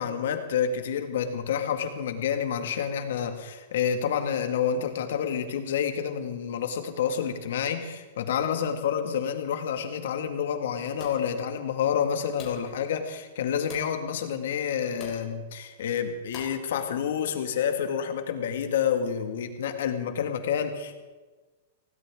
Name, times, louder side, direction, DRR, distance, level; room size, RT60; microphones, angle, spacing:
voice 1, 0.0-21.0, left 8 dB, 70° left, 7 dB, 1.9 m, -29 dB
sound 1, 11.0-11.4 12.4-12.7 13.7-14.0 15.0-15.3 16.3-16.7, left 4 dB, 25° left, 3.8 m, -42 dB
19.5 x 17.0 x 3.8 m, 1.3 s
supercardioid pair, 160°, 0 cm